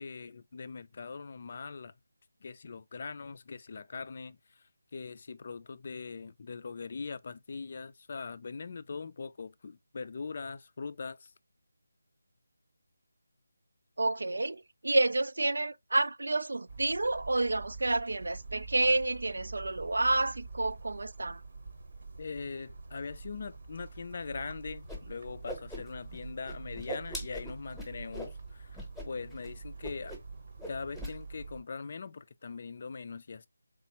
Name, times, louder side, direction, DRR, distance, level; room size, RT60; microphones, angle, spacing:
voice 1, 0.0-1.9 2.4-4.6 4.9-11.3 22.2-30.2 30.7-33.5, left 4 dB, 45° left, 0.4 m, -41 dB
voice 2, 14.0-21.4, right 2 dB, 75° right, 0.4 m, -29 dB
sound 1, 16.7-31.6, right 4 dB, 55° right, 0.8 m, -46 dB
Whoosh swoosh swish, 24.9-25.0 25.3-26.2 26.4-28.3 28.7-29.1 29.3-29.5 29.8-30.3 30.6-31.1, equal, ahead, 0.9 m, -41 dB
3.7 x 3.3 x 2.8 m
figure-of-eight pair, 165°, 0 cm